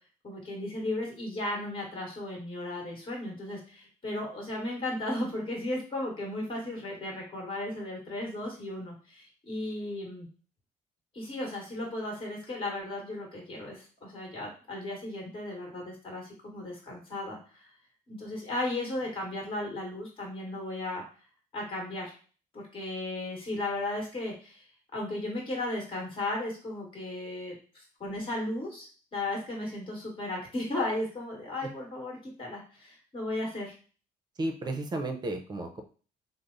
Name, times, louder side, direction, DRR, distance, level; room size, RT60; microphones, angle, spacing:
voice 1, 0.2-10.3 11.1-17.7 18.1-21.0 21.5-22.1 22.5-33.7, left 1 dB, 35° left, -1 dB, 1.4 m, -35 dB
voice 2, 34.4-35.8, right 2 dB, 25° right, 5 dB, 0.6 m, -33 dB
3.1 x 2.0 x 3.8 m, 0.39 s
cardioid pair, 115°, 16 cm